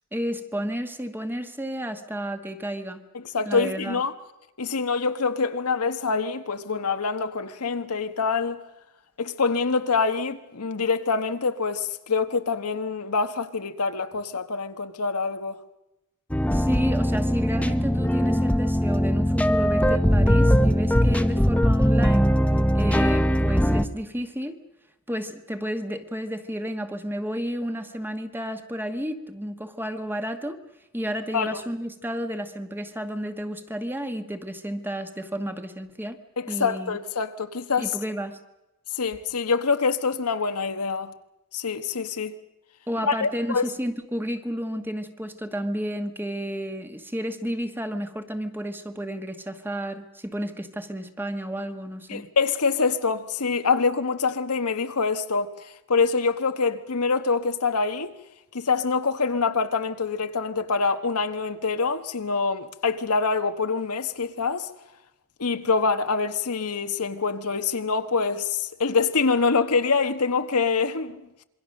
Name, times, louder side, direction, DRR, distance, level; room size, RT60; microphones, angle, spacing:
voice 1, 0.1-3.0 3.4-4.0 16.5-22.3 22.7-24.6 25.1-30.6 30.9-36.2 36.5-37.0 37.8-38.4 42.9-52.3, equal, 10° right, 1.3 m, -32 dB
voice 2, 3.1-4.1 4.6-8.6 9.2-15.6 31.3-31.6 36.4-37.9 38.9-41.1 41.5-42.3 43.1-43.7 52.1-58.1 58.5-64.7 65.4-71.4, left 4 dB, 85° left, 1.3 m, -25 dB
sound 1, 16.3-23.9, equal, 5° left, 0.8 m, -21 dB
26.5 x 22.5 x 6.5 m
head